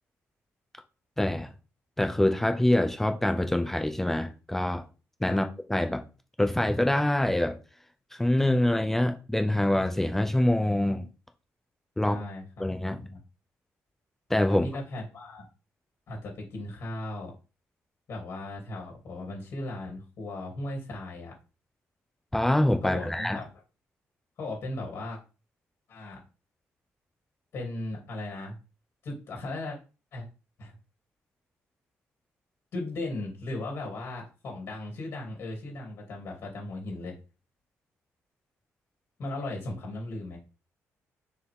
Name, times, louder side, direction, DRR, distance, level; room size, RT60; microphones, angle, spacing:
voice 1, 1.2-1.5 2.0-4.8 5.2-6.0 6.4-7.6 8.1-11.0 12.0-12.2 12.6-13.1 14.3-14.7 22.3-23.4, left 1 dB, 5° left, 0.5 m, -25 dB
voice 2, 12.0-13.2 14.5-15.4 16.1-17.3 18.1-21.3 22.8-23.5 24.4-25.2 25.9-26.2 27.5-28.5 29.0-29.8 30.1-30.2 30.6-30.7 32.7-37.2 39.2-40.4, left 2 dB, 45° left, 2.8 m, -37 dB
6.8 x 4.7 x 3.6 m
cardioid pair, 170°, 5 cm